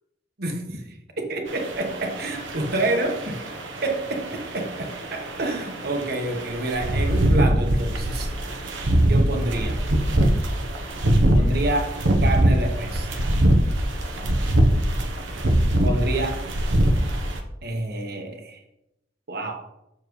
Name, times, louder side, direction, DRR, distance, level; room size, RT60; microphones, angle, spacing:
voice 1, 0.4-3.4 3.8-8.3 9.1-9.8 11.3-13.1 15.8-16.4 17.6-18.6 19.3-19.6, right 2 dB, 55° right, 3 dB, 1.3 m, -28 dB
sound 1, 1.5-17.4, right 1 dB, 80° right, 1.0 m, -23 dB
7.1 x 6.7 x 3.2 m, 0.85 s
head